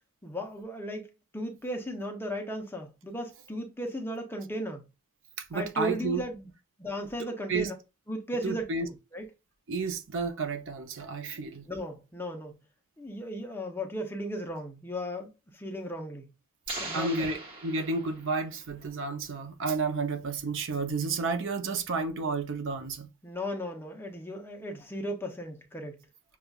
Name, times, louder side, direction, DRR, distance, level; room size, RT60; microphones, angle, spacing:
voice 1, 0.2-1.1 1.3-4.8 5.5-6.5 6.8-7.8 8.1-9.2 11.7-12.6 13.0-16.3 16.8-17.3 23.2-26.0, equal, 10° left, 0.7 m, -36 dB
voice 2, 5.5-6.2 7.5-7.7 8.4-8.9 9.7-11.7 16.7-23.1, right 4 dB, 60° right, 0.7 m, -31 dB
sound 1, 16.7-18.5, right 2 dB, 25° right, 1.2 m, -40 dB
6.6 x 2.4 x 2.3 m
head